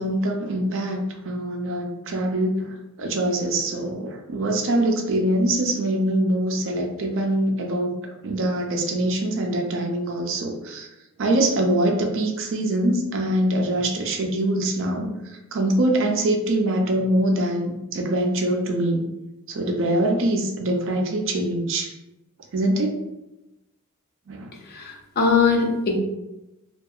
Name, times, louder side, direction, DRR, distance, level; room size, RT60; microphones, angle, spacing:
voice 1, 0.0-8.0 8.2-10.9 11.2-15.1 15.5-19.1 19.5-21.9 22.5-23.0 24.3-24.5, right 1 dB, 60° right, 3 dB, 0.4 m, -23 dB
voice 2, 24.7-26.0, left 5 dB, 45° left, 1 dB, 0.4 m, -21 dB
2.7 x 2.3 x 2.3 m, 0.95 s
head